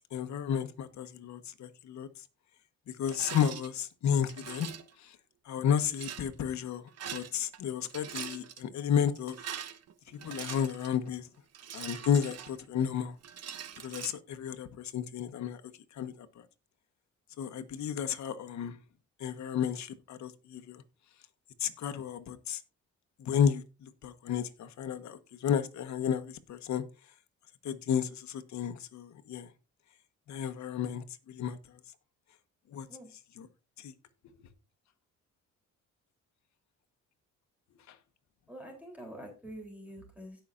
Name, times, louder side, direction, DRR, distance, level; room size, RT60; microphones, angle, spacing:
voice 1, 0.1-2.2 2.9-4.7 5.0-5.2 5.4-9.4 10.1-11.3 11.7-13.2 13.8-15.6 15.9-16.5 17.4-18.8 19.2-20.8 21.6-22.6 23.2-26.8 27.6-29.5 30.3-31.8 32.7-32.9 33.1-33.5 33.8-33.9 34.4-34.5 37.9-38.0, left 8 dB, 65° left, 1.3 m, -32 dB
Rattle, 3.1-3.7 4.3-4.9 5.8-6.3 6.9-7.6 7.8-8.6 9.2-11.0 11.5-12.8 13.2-14.1, right 9 dB, 55° right, 1.1 m, -42 dB
voice 2, 38.5-40.4, equal, 5° right, 3.5 m, -46 dB
17.0 x 5.8 x 2.6 m
cardioid pair, 90°, 30 cm